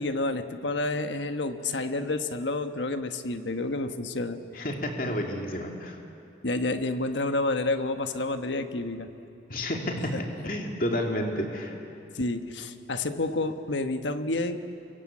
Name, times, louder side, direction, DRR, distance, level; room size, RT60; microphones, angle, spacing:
voice 1, 0.0-4.6 6.4-9.1 10.1-10.2 12.1-14.6, left 2 dB, 80° left, 8 dB, 1.4 m, -29 dB
voice 2, 4.5-6.0 9.5-11.8, left 1 dB, 50° left, 1 dB, 2.7 m, -30 dB
29.0 x 23.5 x 8.6 m, 2.7 s
head